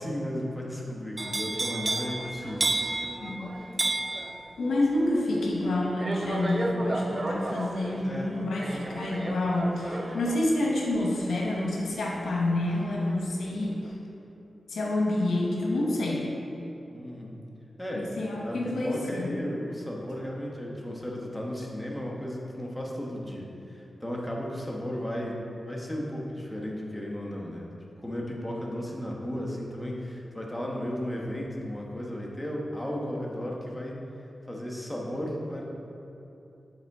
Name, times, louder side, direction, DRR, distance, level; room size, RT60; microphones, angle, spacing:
voice 1, 0.0-2.7 8.0-8.4 16.9-17.4 17.8-27.7 28.0-34.0 34.5-35.6, equal, 5° left, -3 dB, 1.1 m, -34 dB
sound 1, 1.2-13.1 13.5-13.9, right 2 dB, 35° right, 0.4 m, -33 dB
voice 2, 3.2-3.6 4.6-13.9 14.7-16.3 17.9-19.4, left 1 dB, 90° left, -3 dB, 0.9 m, -28 dB
7.8 x 4.3 x 3.5 m, 2.9 s
cardioid pair, 60°, 0 cm